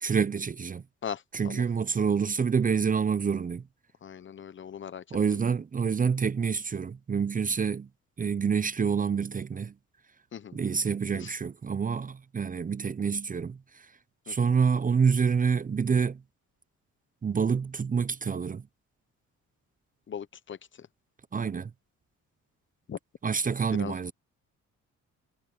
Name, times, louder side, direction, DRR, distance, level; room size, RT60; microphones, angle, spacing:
voice 1, 0.0-0.8 1.3-3.6 5.1-7.9 8.2-9.7 10.5-13.9 14.3-16.2 17.2-18.7 21.3-21.7 23.2-24.1, right 6 dB, 25° right, 0.6 m, -27 dB
voice 2, 1.0-1.6 4.0-5.0 10.3-10.6 11.2-11.3 14.3-14.5 20.1-20.9 22.9-23.0 23.7-24.0, left 8 dB, 40° left, 0.9 m, -39 dB
cardioid pair, 90°, 30 cm